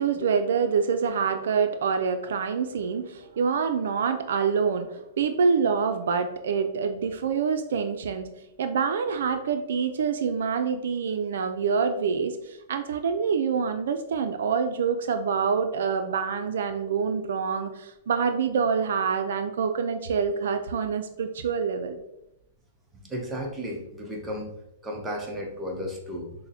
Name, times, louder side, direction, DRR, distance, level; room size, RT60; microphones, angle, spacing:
voice 1, 0.0-8.3 8.6-22.0, right 6 dB, 75° right, 7 dB, 0.4 m, -26 dB
voice 2, 23.0-24.5 24.8-26.3, equal, 10° right, 0 dB, 0.7 m, -34 dB
6.0 x 2.1 x 2.7 m, 0.85 s
hypercardioid pair, 140°, 0 cm